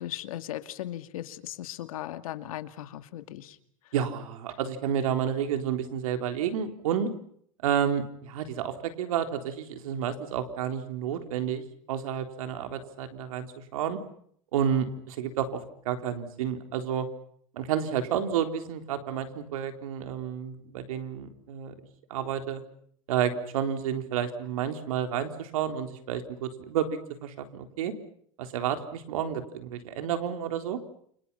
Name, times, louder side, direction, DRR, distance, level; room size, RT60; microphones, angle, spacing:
voice 1, 0.0-3.6, left 13 dB, 85° left, 9 dB, 2.4 m, -37 dB
voice 2, 3.9-7.1 7.6-14.0 14.5-17.1 17.5-21.7 22.1-22.6 23.1-27.9 28.4-30.8, right 9 dB, 80° right, 7 dB, 3.9 m, -30 dB
29.5 x 27.0 x 5.7 m, 0.65 s
supercardioid pair, 155°, 18 cm